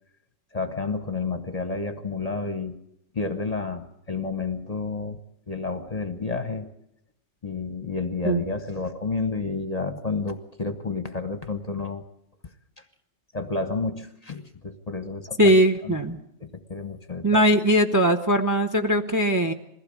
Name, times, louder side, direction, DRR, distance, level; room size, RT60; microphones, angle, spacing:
voice 1, 0.5-2.8 3.1-5.2 5.5-6.7 7.4-12.0 13.3-15.5 15.8-16.0 16.4-17.4, left 4 dB, 30° left, 9 dB, 1.0 m, -30 dB
voice 2, 15.4-16.2 17.2-19.5, equal, 15° right, 7 dB, 0.8 m, -20 dB
21.5 x 16.0 x 8.3 m, 0.80 s
omnidirectional pair, 1.4 m